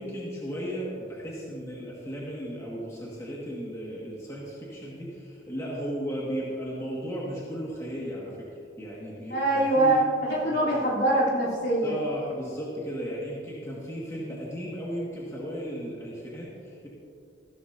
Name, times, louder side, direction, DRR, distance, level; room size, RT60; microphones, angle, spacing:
voice 1, 0.0-8.5 8.8-10.0 10.5-10.7 11.8-16.9, equal, 15° left, -6 dB, 1.7 m, -35 dB
voice 2, 9.3-12.1, right 1 dB, 60° left, -6 dB, 3.2 m, -24 dB
15.0 x 12.5 x 2.7 m, 2.4 s
head